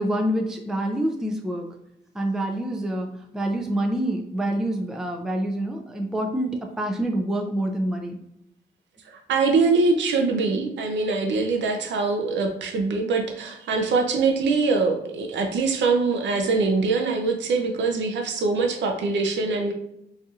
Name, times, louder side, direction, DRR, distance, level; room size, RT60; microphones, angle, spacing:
voice 1, 0.0-1.7 2.1-8.2, right 1 dB, 5° right, 3 dB, 0.4 m, -26 dB
voice 2, 9.1-19.7, right 4 dB, 90° right, 3 dB, 0.5 m, -23 dB
4.1 x 2.6 x 2.4 m, 0.82 s
cardioid pair, 85°, 18 cm